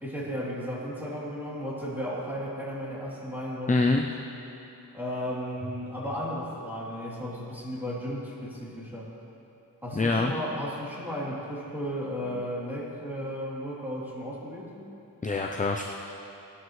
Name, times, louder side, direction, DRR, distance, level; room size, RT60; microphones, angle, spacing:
voice 1, 0.0-4.1 4.9-9.1 9.8-14.8, equal, 5° right, -7 dB, 3.1 m, -34 dB
voice 2, 3.7-4.1 9.9-10.3 15.2-15.8, left 3 dB, 20° left, 2 dB, 0.6 m, -24 dB
18.5 x 12.0 x 3.2 m, 2.9 s
wide cardioid pair, 115°, 37 cm